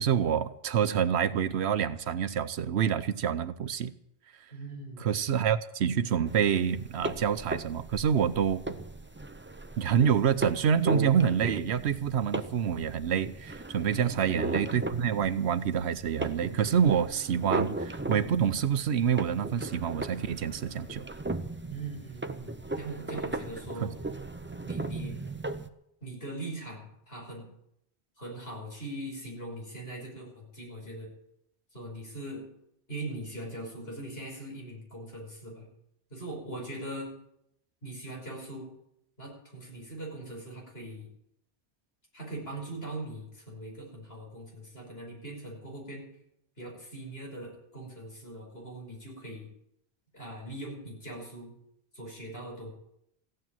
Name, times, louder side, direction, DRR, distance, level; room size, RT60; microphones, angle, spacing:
voice 1, 0.0-3.9 5.0-8.6 9.8-21.0, right 8 dB, 85° right, 1.0 m, -27 dB
voice 2, 4.5-5.1 13.9-14.4 21.7-22.5 22.8-23.9 24.6-25.2 26.0-27.5 28.2-31.1 31.7-32.4 32.9-35.7 36.1-37.1 37.8-38.7 39.2-41.1 42.1-46.0 46.6-49.5 50.1-51.5 51.9-52.7, right 1 dB, 65° left, 5.9 m, -41 dB
sound 1, 6.3-25.7, right 2 dB, 15° right, 0.6 m, -37 dB
15.5 x 8.9 x 9.0 m
omnidirectional pair, 1.1 m